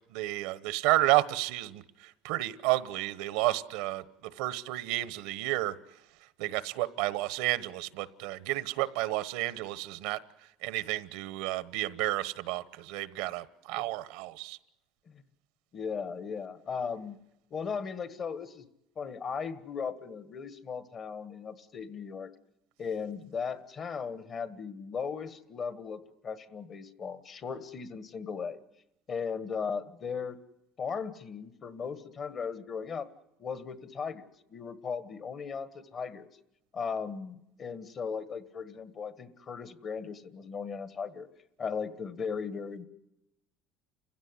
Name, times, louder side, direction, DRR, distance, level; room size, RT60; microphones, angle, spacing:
voice 1, 0.1-5.8 6.4-10.2 10.6-14.6, right 17 dB, 85° right, 16 dB, 1.1 m, -31 dB
voice 2, 15.7-17.2 17.5-18.6 18.9-22.3 22.8-28.6 29.1-30.4 30.8-33.1 33.4-36.3 36.7-41.3 41.6-42.9, left 6 dB, 40° left, 13 dB, 1.5 m, -37 dB
29.5 x 16.0 x 9.7 m, 0.88 s
cardioid pair, 125°, 0 cm